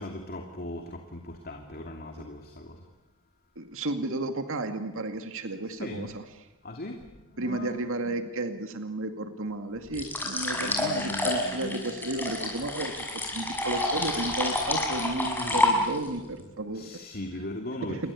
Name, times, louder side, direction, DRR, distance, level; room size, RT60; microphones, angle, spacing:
voice 1, 0.0-2.8 5.7-6.1 6.6-7.0 7.3-8.1 10.5-12.0 15.1-15.7 16.7-18.1, left 1 dB, 45° left, 3 dB, 2.7 m, -38 dB
voice 2, 3.6-6.2 7.4-13.0 13.3-16.8 17.8-18.1, right 2 dB, 65° right, 7 dB, 2.3 m, -33 dB
sound 1, 9.9-16.2, left 2 dB, 10° left, 6.7 m, -28 dB
29.0 x 23.0 x 8.5 m, 1.0 s
head